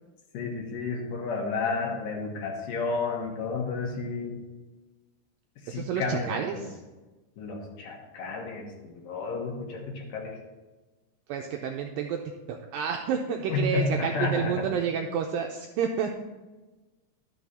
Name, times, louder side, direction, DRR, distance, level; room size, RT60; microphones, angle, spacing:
voice 1, 0.3-4.3 5.6-6.7 7.4-10.4 13.5-14.7, left 3 dB, 65° left, 0 dB, 2.8 m, -31 dB
voice 2, 5.7-6.8 11.3-12.2 12.5-16.1, right 7 dB, 80° right, 3 dB, 2.0 m, -30 dB
12.0 x 6.3 x 4.2 m, 1.2 s
omnidirectional pair, 4.4 m